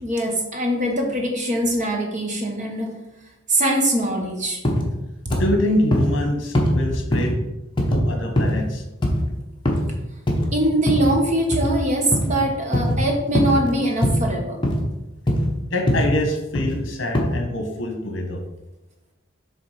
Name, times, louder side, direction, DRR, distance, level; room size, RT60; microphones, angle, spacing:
voice 1, 0.0-2.9 3.5-4.6 10.5-14.6, right 1 dB, 35° right, 1 dB, 1.1 m, -22 dB
sound 1, 4.7-4.9 5.3-5.5 5.9-6.1 6.6-6.8 7.1-7.4 7.8-8.0 8.4-8.6 9.0-9.2 9.7-9.9 10.3-10.5 10.9-11.1 11.5-11.7 12.1-12.4 12.7-13.0 13.4-13.6 14.0-14.3 14.6-14.8 15.3-15.5 15.9-16.1 16.6-16.8 17.2-17.3, equal, 25° left, 1.0 m, -21 dB
voice 2, 5.3-7.3 7.9-8.8 15.7-18.4, left 1 dB, 65° left, 3 dB, 1.1 m, -25 dB
7.2 x 3.4 x 4.9 m, 0.99 s
head